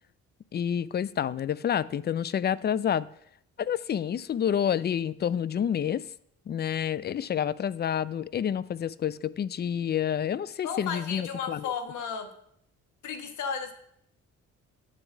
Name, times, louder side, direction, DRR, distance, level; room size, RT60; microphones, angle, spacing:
voice 1, 0.5-3.1 3.6-6.1 6.5-11.7, left 9 dB, 35° left, 0.4 m, -28 dB
voice 2, 10.6-12.3 13.0-13.7, left 6 dB, 75° left, 1.3 m, -34 dB
9.8 x 4.7 x 7.5 m
cardioid pair, 90°, 30 cm